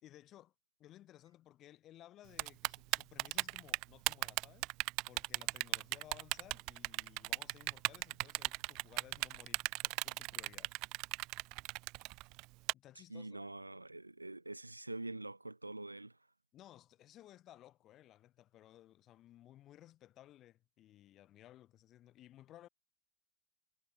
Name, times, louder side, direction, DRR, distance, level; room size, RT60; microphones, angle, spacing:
voice 1, 0.0-0.5 0.8-4.7 5.1-10.7 12.7-13.5 16.5-22.7, left 13 dB, 35° left, 2.9 m, -59 dB
Typing, 2.4-12.7, right 24 dB, 40° right, 0.3 m, -36 dB
voice 2, 13.1-16.2, right 2 dB, 85° right, 0.7 m, -45 dB
figure-of-eight pair, 90°, 0 cm